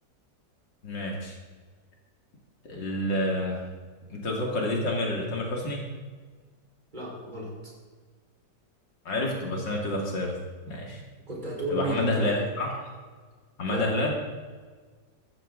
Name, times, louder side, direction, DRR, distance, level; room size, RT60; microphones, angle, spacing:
voice 1, 0.8-1.4 2.6-3.6 4.1-5.9 9.0-10.4 10.7-11.0 11.7-12.9 13.6-14.1, left 1 dB, 80° left, -1 dB, 3.3 m, -29 dB
voice 2, 6.9-7.5 11.3-12.4 13.7-13.9, right 1 dB, 25° right, -3 dB, 5.2 m, -33 dB
16.0 x 14.0 x 4.0 m, 1.5 s
omnidirectional pair, 1.9 m